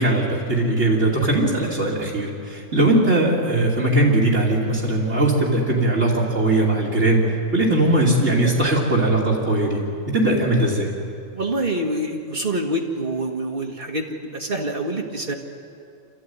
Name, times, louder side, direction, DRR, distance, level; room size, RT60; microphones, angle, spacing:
voice 1, 0.0-7.2 7.5-9.8 10.1-10.9, right 2 dB, 65° right, -3 dB, 3.2 m, -19 dB
voice 2, 11.3-14.1 14.3-15.3, right 1 dB, 45° right, 2 dB, 2.0 m, -26 dB
27.0 x 14.5 x 9.5 m, 2.5 s
omnidirectional pair, 1.3 m